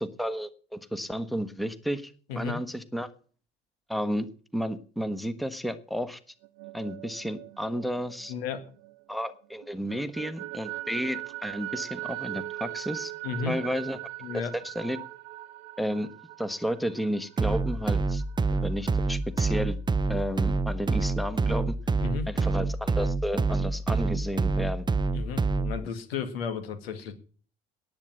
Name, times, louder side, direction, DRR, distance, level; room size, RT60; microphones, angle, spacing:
voice 1, 0.0-3.1 3.9-4.3 4.5-6.2 6.7-8.3 9.1-13.1 13.5-14.0 14.5-15.0 15.8-16.1 16.4-18.2 18.6-19.8 20.1-21.7 22.3-24.8, equal, ahead, 12 dB, 1.3 m, -32 dB
sound 1, 6.4-9.3 9.6-19.0, right 17 dB, 75° right, 0.9 m, -41 dB
voice 2, 8.3-8.6 13.2-13.5 14.2-14.5 22.0-22.3 25.1-27.1, left 6 dB, 80° left, 9 dB, 2.1 m, -33 dB
sound 2, 17.4-25.9, right 3 dB, 15° right, 0.6 m, -27 dB
10.5 x 8.5 x 8.9 m, 0.42 s
hypercardioid pair, 65°, 30 cm